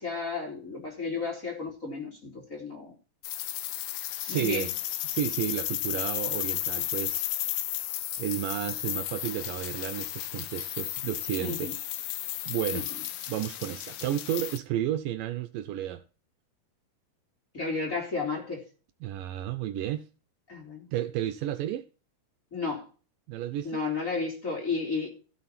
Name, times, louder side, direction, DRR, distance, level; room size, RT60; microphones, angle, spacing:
voice 1, 0.0-2.9 4.3-4.7 11.4-11.7 12.7-12.8 17.5-18.6 20.5-20.9 22.5-22.9 23.6-25.1, left 4 dB, 20° left, 3.8 m, -32 dB
sound 1, 3.2-14.6, left 14 dB, 75° left, 2.6 m, -33 dB
voice 2, 4.2-4.7 5.0-7.3 8.2-11.7 12.5-13.0 13.3-16.0 19.0-20.1 20.9-21.9 23.3-23.8, right 12 dB, 80° right, 2.2 m, -32 dB
16.0 x 6.3 x 4.2 m
omnidirectional pair, 4.2 m